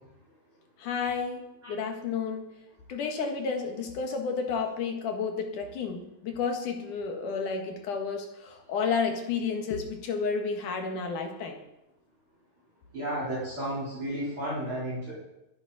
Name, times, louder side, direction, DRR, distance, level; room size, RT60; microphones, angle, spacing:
voice 1, 0.8-1.4 1.7-2.5 2.9-11.6, left 5 dB, 65° left, 3 dB, 3.1 m, -31 dB
voice 2, 12.9-15.1, right 1 dB, 35° right, -6 dB, 4.9 m, -32 dB
20.5 x 10.5 x 4.2 m, 0.92 s
omnidirectional pair, 4.1 m